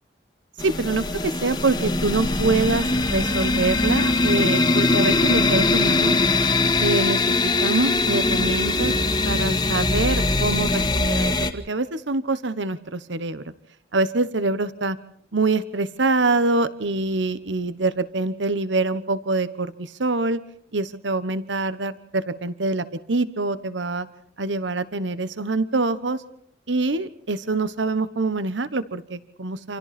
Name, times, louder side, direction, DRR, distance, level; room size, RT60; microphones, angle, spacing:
sound 1, 0.6-11.5, left 2 dB, 20° left, 1.8 m, -21 dB
voice 1, 0.6-6.2 6.8-8.9 9.2-13.5 13.9-15.0 15.3-20.4 20.7-24.1 24.4-26.2 26.7-29.8, right 3 dB, 75° right, 14 dB, 1.2 m, -25 dB
28.5 x 28.0 x 4.3 m, 0.67 s
head